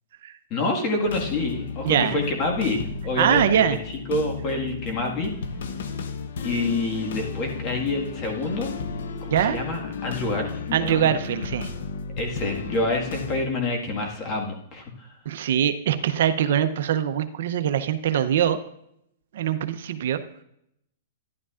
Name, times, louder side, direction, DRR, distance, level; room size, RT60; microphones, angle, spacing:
voice 1, 0.5-5.3 6.4-8.7 9.2-11.1 12.2-15.1, left 2 dB, 30° left, 1 dB, 1.7 m, -27 dB
sound 1, 1.0-13.5, left 5 dB, 75° left, 0.8 m, -34 dB
voice 2, 1.8-2.2 3.2-3.8 9.3-9.6 10.7-11.7 15.3-18.6 19.3-20.2, right 9 dB, 65° right, 10 dB, 0.6 m, -22 dB
12.0 x 11.0 x 2.4 m, 0.75 s
hypercardioid pair, 160°, 0 cm